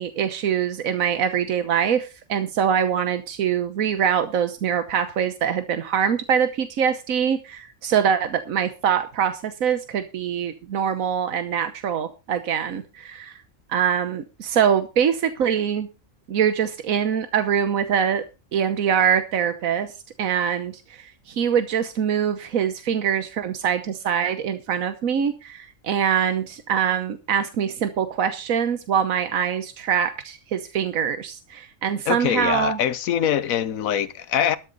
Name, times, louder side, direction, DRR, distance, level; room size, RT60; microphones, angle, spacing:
voice 1, 0.0-13.3 13.7-15.9 16.3-18.2 18.5-19.9 20.2-32.8, right 8 dB, 90° right, 1.4 m, -24 dB
voice 2, 32.0-34.6, left 9 dB, 90° left, 1.3 m, -23 dB
13.0 x 11.5 x 3.9 m
omnidirectional pair, 1.4 m